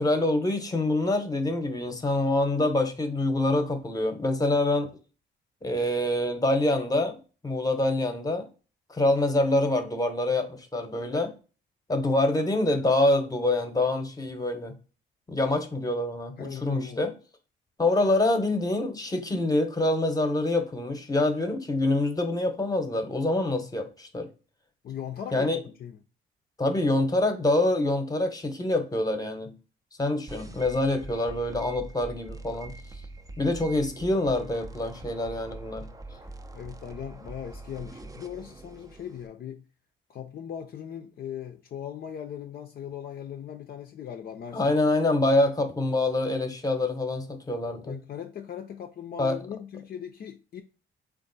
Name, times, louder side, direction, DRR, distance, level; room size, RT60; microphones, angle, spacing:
voice 1, 0.0-4.9 5.6-7.2 7.4-8.5 8.9-11.3 11.9-14.7 15.3-17.1 17.8-24.3 25.3-25.6 26.6-29.5 30.0-32.7 33.4-35.9 44.5-48.0 49.2-49.4, left 2 dB, 20° left, 0.9 m, -26 dB
voice 2, 16.4-17.1 24.8-26.0 36.5-39.6 40.1-44.8 47.8-50.6, left 9 dB, 50° left, 0.5 m, -39 dB
sound 1, 30.3-39.3, right 2 dB, 20° right, 0.5 m, -43 dB
3.5 x 2.5 x 4.0 m
cardioid pair, 90°, 20 cm